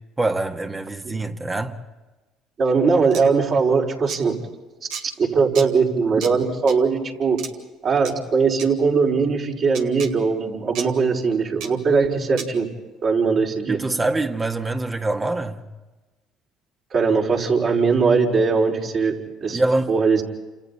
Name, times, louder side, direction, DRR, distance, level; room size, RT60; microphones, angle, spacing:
voice 1, 0.2-1.8 13.7-15.6 19.5-19.9, right 2 dB, 25° right, 1.7 m, -24 dB
voice 2, 2.6-4.4 5.2-7.4 7.8-12.7 13.0-13.8 16.9-19.6 19.9-20.2, right 5 dB, 50° right, 5.3 m, -20 dB
sound 1, 3.1-3.2 4.1-4.2 4.9-5.0 5.6-5.7 6.2-6.3 6.7-6.8 7.4-7.5 8.1-8.2 8.6-8.7 9.7-10.1 10.8-10.9 11.6-11.7 12.4-12.5, right 6 dB, 75° right, 2.1 m, -32 dB
30.0 x 28.0 x 4.2 m
supercardioid pair, 70°, 0 cm